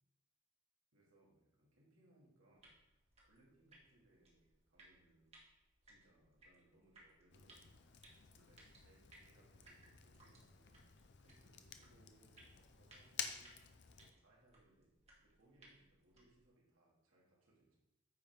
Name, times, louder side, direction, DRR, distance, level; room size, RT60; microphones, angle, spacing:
voice 1, 0.9-2.8 3.2-5.4 5.8-7.9 8.3-13.6 14.0-14.9 15.2-17.8, right 1 dB, 75° right, -4 dB, 2.5 m, -71 dB
sound 1, 2.5-16.5, right 2 dB, 30° right, 1.8 m, -67 dB
Fire, 7.3-14.1, left 8 dB, 55° left, 0.6 m, -52 dB
9.2 x 5.4 x 3.7 m, 0.90 s
head